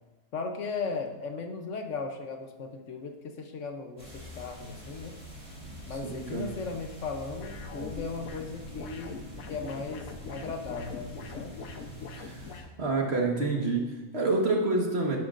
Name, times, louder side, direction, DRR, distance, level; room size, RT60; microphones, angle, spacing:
voice 1, 0.3-5.2 5.9-9.2 9.5-11.5, left 4 dB, 65° left, 4 dB, 1.1 m, -37 dB
sound 1, 4.0-12.6, equal, 20° right, 3.3 m, -45 dB
voice 2, 5.9-6.5 12.1-12.4 12.8-15.2, right 3 dB, 50° right, 0 dB, 1.7 m, -28 dB
sound 2, 7.4-12.7, left 4 dB, 85° left, 1.3 m, -43 dB
11.5 x 10.5 x 2.5 m, 1.1 s
omnidirectional pair, 1.5 m